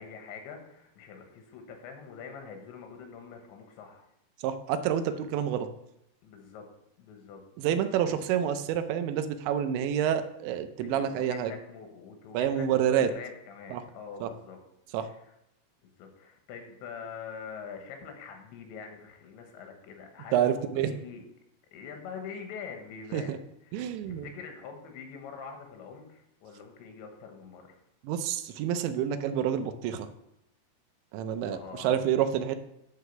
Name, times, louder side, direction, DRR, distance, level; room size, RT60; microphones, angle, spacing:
voice 1, 0.0-4.1 6.2-6.7 7.0-7.4 8.0-8.2 10.8-14.6 15.0-15.2 15.8-21.3 21.7-23.3 23.6-27.8 31.5-31.9, left 6 dB, 85° left, 4 dB, 3.7 m, -44 dB
voice 2, 4.4-5.7 7.6-11.5 12.3-13.1 13.7-13.8 14.2-14.3 14.9-15.1 20.3-20.9 23.1-23.4 23.7-24.3 28.0-30.1 31.1-32.6, right 9 dB, 90° right, 9 dB, 3.0 m, -28 dB
10.0 x 4.7 x 6.7 m, 0.80 s
omnidirectional pair, 5.1 m